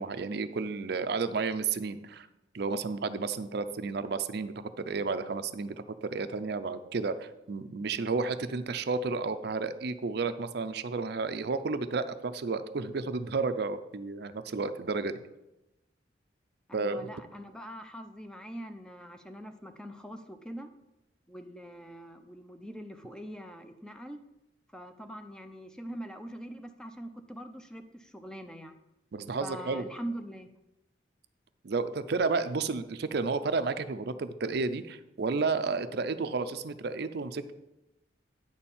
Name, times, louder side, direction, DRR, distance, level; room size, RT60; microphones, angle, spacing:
voice 1, 0.0-2.3 2.5-5.7 6.0-15.2 16.7-17.1 29.1-29.8 31.6-37.5, right 4 dB, 55° right, 11 dB, 0.5 m, -32 dB
voice 2, 16.7-20.7 21.3-24.2 24.7-28.8 29.4-30.5, equal, 5° left, 7 dB, 0.5 m, -43 dB
9.6 x 4.3 x 7.2 m, 0.93 s
head